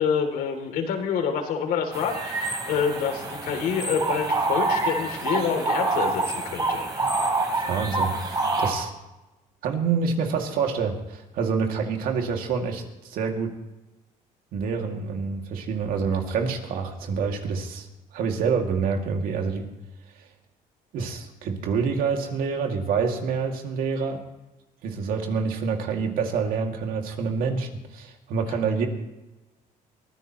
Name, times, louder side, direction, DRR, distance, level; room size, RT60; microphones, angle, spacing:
voice 1, 0.0-6.8, left 6 dB, 75° left, 4 dB, 2.9 m, -27 dB
sound 1, 1.9-8.7, right 3 dB, 25° right, 4.0 m, -27 dB
voice 2, 7.5-8.9 9.6-13.5 14.5-17.9 18.1-19.7 20.9-24.2 24.8-28.9, right 5 dB, 75° right, 3 dB, 2.3 m, -27 dB
22.5 x 15.5 x 3.0 m, 1.0 s
cardioid pair, 105°, 15 cm